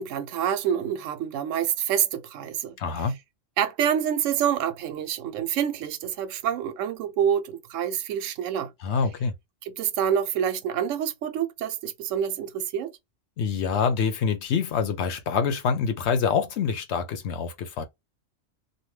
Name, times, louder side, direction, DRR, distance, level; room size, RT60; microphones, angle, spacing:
voice 1, 0.0-2.8 3.6-8.7 9.6-12.9, right 9 dB, 90° right, 0.9 m, -27 dB
voice 2, 2.8-3.2 8.8-9.3 13.4-17.8, left 6 dB, 65° left, 0.9 m, -26 dB
2.7 x 2.2 x 3.1 m
omnidirectional pair, 1.3 m